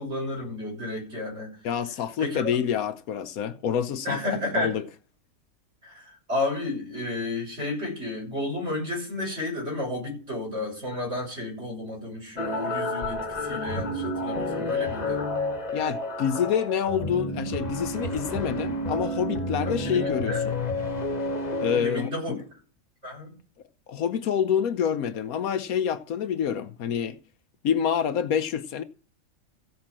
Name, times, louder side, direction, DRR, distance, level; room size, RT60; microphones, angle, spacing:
voice 1, 0.0-1.5 2.2-2.4 4.0-4.8 5.8-15.3 19.7-20.4 21.7-22.3 23.0-23.3, left 2 dB, 50° right, 7.4 m, -32 dB
voice 2, 1.6-4.2 4.5-4.8 15.7-20.5 21.6-22.4 23.9-27.2 27.6-28.8, left 8 dB, 75° left, 1.2 m, -27 dB
sound 1, 12.4-21.8, left 2 dB, 30° left, 1.3 m, -30 dB
15.5 x 5.3 x 7.4 m
omnidirectional pair, 1.6 m